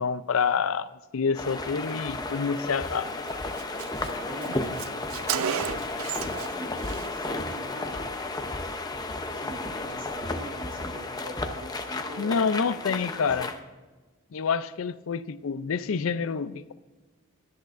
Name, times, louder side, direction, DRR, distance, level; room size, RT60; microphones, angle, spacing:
voice 1, 0.0-3.1 4.5-4.6 12.2-13.5 14.3-16.7, left 5 dB, 75° left, 0.5 m, -27 dB
sound 1, 1.3-13.6, left 2 dB, 20° left, 0.7 m, -33 dB
Car, 2.9-3.0 3.3-3.4 3.6-6.5 6.8-7.1, right 9 dB, 75° right, 0.4 m, -33 dB
voice 2, 4.0-4.7 5.1-8.4 9.3-13.6, equal, 60° right, 3.6 m, -42 dB
17.0 x 10.5 x 2.5 m
head